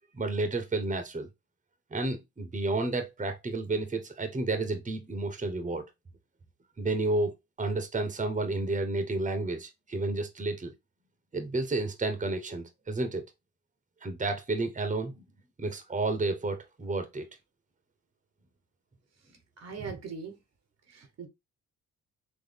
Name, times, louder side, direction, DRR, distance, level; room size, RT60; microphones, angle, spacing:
voice 1, 0.2-1.3 1.9-5.8 6.8-10.7 11.3-13.2 14.0-15.1 15.6-17.2, right 2 dB, 25° right, 1.1 m, -31 dB
voice 2, 19.6-20.4 20.9-21.3, right 5 dB, 50° right, 1.2 m, -40 dB
4.2 x 3.1 x 3.4 m
supercardioid pair, 65°, 32 cm